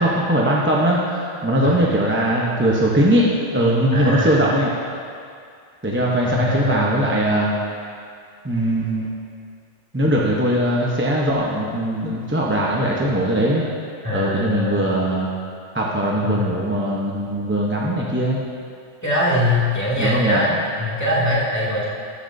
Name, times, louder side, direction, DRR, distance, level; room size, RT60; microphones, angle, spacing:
voice 1, 0.0-4.7 5.8-7.5 8.4-9.1 9.9-13.7 14.1-15.3 15.7-18.4 20.0-20.4, right 1 dB, 10° right, -4 dB, 0.8 m, -20 dB
voice 2, 3.9-4.4 6.2-7.1 14.0-14.9 16.2-16.4 19.0-20.5 20.8-21.9, left 1 dB, 15° left, -8 dB, 2.3 m, -22 dB
13.0 x 10.0 x 2.7 m, 2.3 s
omnidirectional pair, 1.2 m